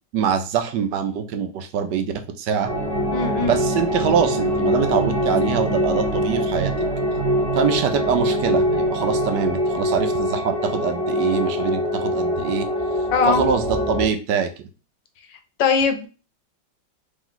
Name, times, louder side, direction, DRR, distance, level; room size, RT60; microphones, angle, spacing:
voice 1, 0.1-2.7 3.4-6.9 7.5-12.7 13.3-14.7, right 7 dB, 75° right, 8 dB, 1.2 m, -24 dB
sound 1, 2.7-14.1, equal, 25° right, 1.2 m, -23 dB
voice 2, 3.1-3.6 13.1-13.4 15.6-16.1, left 5 dB, 85° left, 7 dB, 1.4 m, -20 dB
3.6 x 3.1 x 3.8 m, 0.34 s
omnidirectional pair, 1.9 m